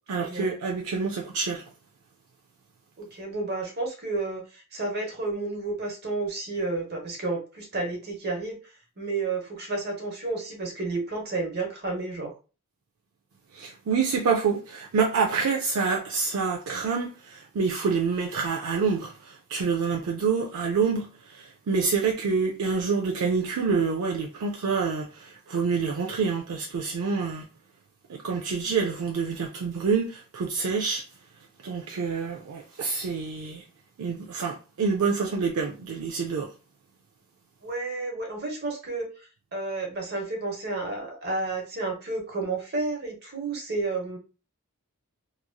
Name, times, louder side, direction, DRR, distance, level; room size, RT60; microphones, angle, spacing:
voice 1, 0.1-1.6 13.5-27.5 28.1-31.0 31.6-33.6 34.0-36.5, right 5 dB, 70° right, 0.4 m, -27 dB
voice 2, 3.0-8.6 9.0-12.3 37.6-44.2, right 3 dB, 45° right, 1.0 m, -31 dB
3.0 x 2.5 x 2.2 m
head